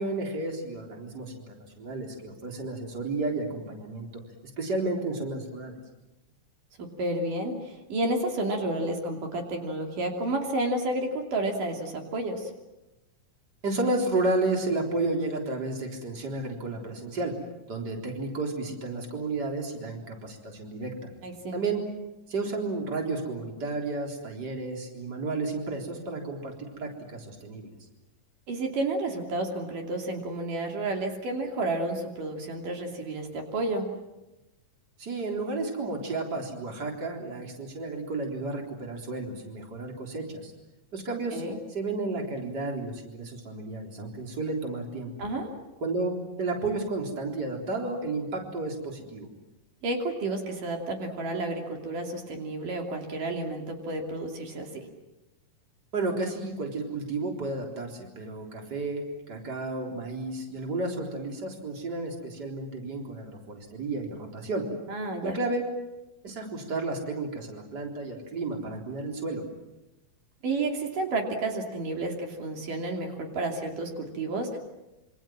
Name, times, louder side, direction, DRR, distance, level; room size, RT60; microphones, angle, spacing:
voice 1, 0.0-4.2 4.6-5.8 13.6-17.3 17.7-21.1 21.5-21.8 22.3-27.7 35.0-40.5 40.9-41.4 41.7-45.1 45.8-46.1 46.4-49.3 55.9-64.6 65.2-65.6 66.2-69.4, right 2 dB, 30° right, 1 dB, 4.2 m, -32 dB
voice 2, 6.8-12.5 21.2-21.6 28.5-33.9 41.3-41.6 45.2-45.5 49.8-54.9 64.9-65.4 70.4-74.6, right 2 dB, 75° right, 2 dB, 4.5 m, -31 dB
27.0 x 26.0 x 7.6 m, 1.0 s
omnidirectional pair, 3.8 m